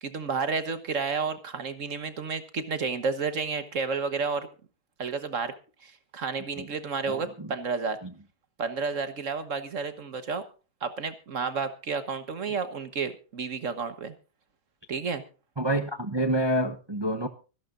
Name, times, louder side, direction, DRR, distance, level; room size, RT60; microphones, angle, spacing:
voice 1, 0.0-4.5 5.0-5.5 5.8-8.0 8.6-10.4 10.8-14.1 14.9-15.2, right 5 dB, 50° right, 1.5 m, -31 dB
voice 2, 7.1-7.5 8.0-8.1 15.6-17.3, right 1 dB, 25° right, 0.6 m, -28 dB
25.5 x 11.5 x 2.6 m
omnidirectional pair, 1.9 m